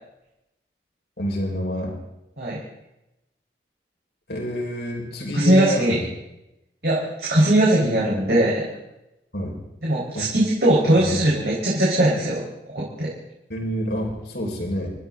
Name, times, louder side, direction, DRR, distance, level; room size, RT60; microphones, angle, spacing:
voice 1, 1.2-1.9 4.3-6.0 9.3-9.6 10.1-10.3 11.0-11.2 13.5-14.9, equal, 65° left, 0 dB, 4.9 m, -28 dB
voice 2, 5.3-6.0 6.8-8.7 9.8-12.4 12.7-13.1, right 1 dB, 60° right, -6 dB, 4.5 m, -20 dB
30.0 x 12.5 x 3.8 m, 0.91 s
head